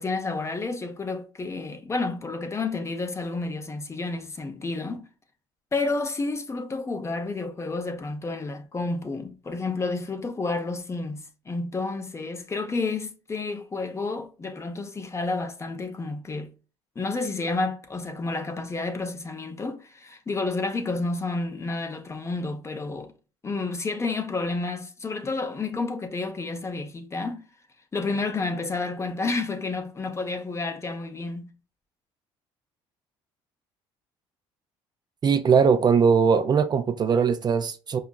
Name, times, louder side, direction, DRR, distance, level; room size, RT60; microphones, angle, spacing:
voice 1, 0.0-5.1 5.7-16.5 17.0-23.1 23.4-27.4 27.9-31.5, left 3 dB, 25° left, 0.6 m, -30 dB
voice 2, 35.2-38.0, right 6 dB, 35° right, 0.4 m, -20 dB
5.0 x 2.3 x 2.2 m
supercardioid pair, 80°, 12 cm